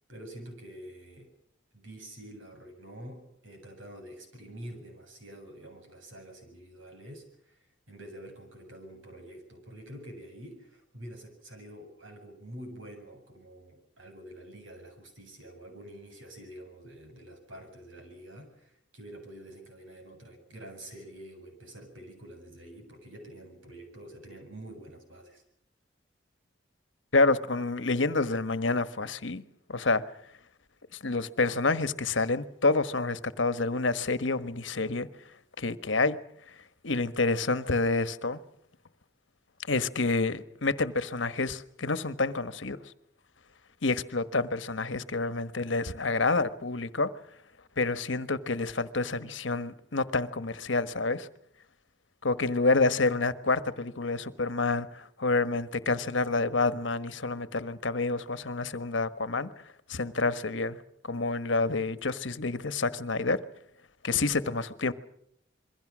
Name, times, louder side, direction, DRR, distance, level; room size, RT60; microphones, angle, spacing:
voice 1, 0.1-1.3 1.7-25.4, right 1 dB, 85° right, 7.7 m, -47 dB
voice 2, 27.1-29.4 29.7-30.0 31.0-35.1 35.6-36.2 36.8-38.4 39.7-42.8 43.8-47.1 47.8-51.3 52.2-59.5 59.9-60.8 61.0-63.4 64.0-64.9, left 3 dB, 75° left, 1.3 m, -28 dB
27.0 x 22.5 x 6.3 m
head